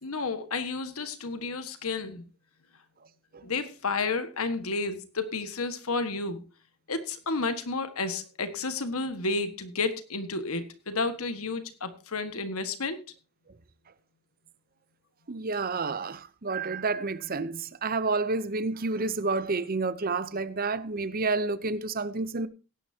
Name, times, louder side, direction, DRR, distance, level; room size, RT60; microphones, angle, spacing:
voice 1, 0.0-2.2 3.4-6.4 6.9-13.0, left 3 dB, 75° left, 1.6 m, -31 dB
voice 2, 15.3-22.5, right 3 dB, 40° right, 0.7 m, -29 dB
17.5 x 10.0 x 2.8 m
head